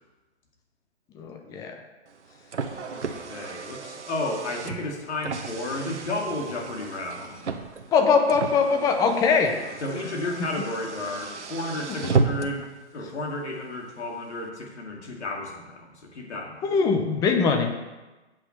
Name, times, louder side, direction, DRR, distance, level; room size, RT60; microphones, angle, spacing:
voice 1, 1.2-1.7 7.9-9.5 11.9-12.0 16.6-17.7, left 5 dB, 10° left, 5 dB, 0.5 m, -22 dB
Car, 2.1-12.7, right 5 dB, 90° right, 1.0 m, -33 dB
voice 2, 2.7-7.4 9.8-12.7 12.9-16.7, left 2 dB, 75° left, 0 dB, 2.2 m, -32 dB
8.6 x 6.0 x 5.6 m, 1.1 s
hypercardioid pair, 135°, 34 cm